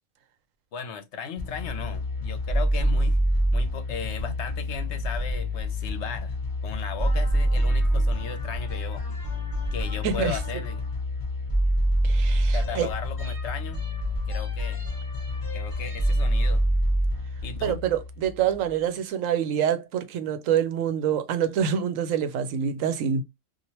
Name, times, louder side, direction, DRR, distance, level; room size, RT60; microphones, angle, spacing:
voice 1, 0.7-3.2 3.5-6.3 6.6-9.0 9.7-10.8 12.5-13.8 14.3-14.8 15.5-16.6 17.4-17.8, left 6 dB, 70° left, 0.9 m, -36 dB
sound 1, 1.4-18.7, equal, 20° left, 1.0 m, -26 dB
voice 2, 10.0-10.4 12.0-12.9 17.6-23.2, right 8 dB, 85° right, 1.0 m, -26 dB
2.9 x 2.5 x 2.9 m
omnidirectional pair, 1.3 m